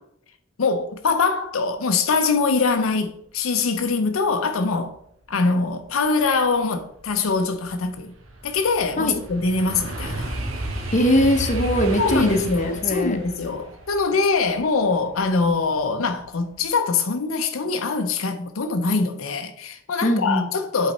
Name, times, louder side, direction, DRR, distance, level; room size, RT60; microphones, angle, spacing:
voice 1, 0.6-5.0 5.3-8.1 8.4-10.3 12.0-20.9, left 4 dB, 85° left, 0.6 m, -23 dB
sound 1, 6.1-6.2 6.7-15.7 16.1-16.5, right 1 dB, 75° right, 1.5 m, -33 dB
voice 2, 10.9-13.2 20.0-20.5, equal, 35° left, 0.9 m, -21 dB
8.3 x 4.1 x 4.1 m
head